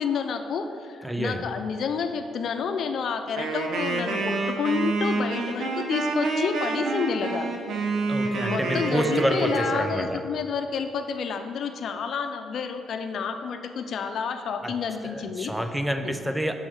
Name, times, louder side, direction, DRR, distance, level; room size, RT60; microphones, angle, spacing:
voice 1, 0.0-7.5 8.5-15.5 16.0-16.2, left 6 dB, 65° left, 7 dB, 0.6 m, -29 dB
voice 2, 1.0-1.5 8.1-10.3 14.6-14.7 15.0-16.6, equal, 5° right, 8 dB, 0.5 m, -28 dB
Wind instrument woodwind instrument, 3.4-10.0, right 3 dB, 80° right, 1.0 m, -28 dB
6.4 x 6.0 x 6.5 m, 2.4 s
cardioid pair, 90°, 0 cm